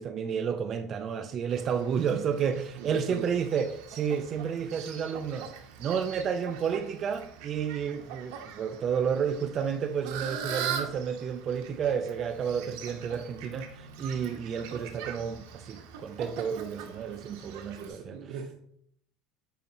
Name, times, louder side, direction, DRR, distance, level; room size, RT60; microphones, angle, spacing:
voice 1, 0.0-5.5 5.8-18.2, right 7 dB, 30° right, 0.3 m, -31 dB
Fowl, 1.5-17.9, right 7 dB, 85° right, 1.1 m, -42 dB
voice 2, 2.8-3.3 17.2-17.4 17.8-18.5, right 5 dB, 65° right, 0.7 m, -39 dB
9.3 x 4.0 x 2.8 m
cardioid pair, 160°, 0 cm